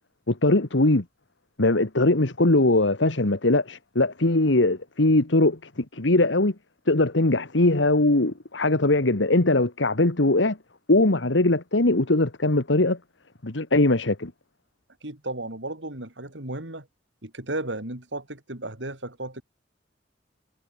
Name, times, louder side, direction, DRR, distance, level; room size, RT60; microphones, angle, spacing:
voice 1, 0.3-1.0 1.6-6.5 6.9-10.6 10.9-13.0 13.4-14.3, left 2 dB, 80° left, 1.9 m, -21 dB
voice 2, 15.0-16.9 17.2-19.4, right 2 dB, 70° right, 4.2 m, -34 dB
head